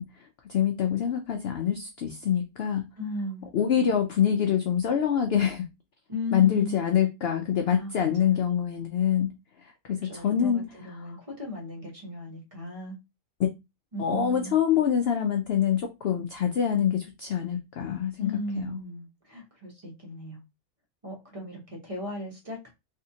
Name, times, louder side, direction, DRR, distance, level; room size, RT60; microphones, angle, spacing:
voice 1, 0.0-2.9 3.5-5.7 6.3-9.3 9.6-10.7 13.4-13.5 14.0-18.7, left 9 dB, 65° left, 0.6 m, -25 dB
voice 2, 3.0-3.5 6.1-6.8 7.7-8.3 9.9-13.0 13.9-14.6 18.2-20.4 21.0-22.7, left 1 dB, 25° right, 1.2 m, -36 dB
3.3 x 2.8 x 2.8 m
omnidirectional pair, 1.5 m